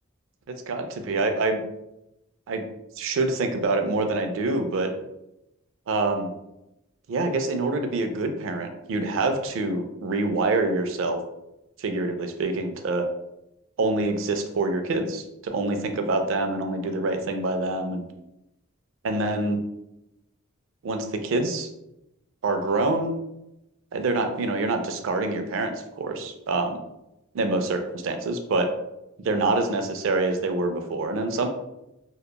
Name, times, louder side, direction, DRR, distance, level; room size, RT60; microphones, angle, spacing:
voice 1, 0.7-1.6 2.5-2.7 3.0-4.9 5.9-6.3 7.1-11.2 11.8-13.1 13.8-18.1 19.0-19.6 20.8-21.7 22.4-23.2 23.9-26.8 27.3-28.7 29.2-31.5, right 2 dB, 70° right, 6 dB, 0.3 m, -26 dB
2.8 x 2.1 x 2.2 m, 0.89 s
head